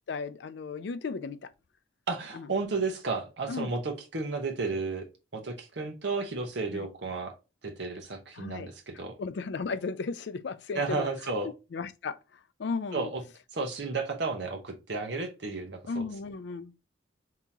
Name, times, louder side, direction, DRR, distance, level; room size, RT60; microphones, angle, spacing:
voice 1, 0.1-1.5 2.3-2.5 3.5-3.7 6.7-6.9 8.3-8.7 9.2-11.1 11.7-12.2 12.6-13.1 15.9-16.8, left 4 dB, 60° left, 0.4 m, -35 dB
voice 2, 2.1-5.1 5.3-7.3 7.6-9.2 10.7-11.5 12.9-13.2 13.5-16.0, right 3 dB, 60° right, 0.8 m, -33 dB
3.6 x 2.8 x 2.7 m
head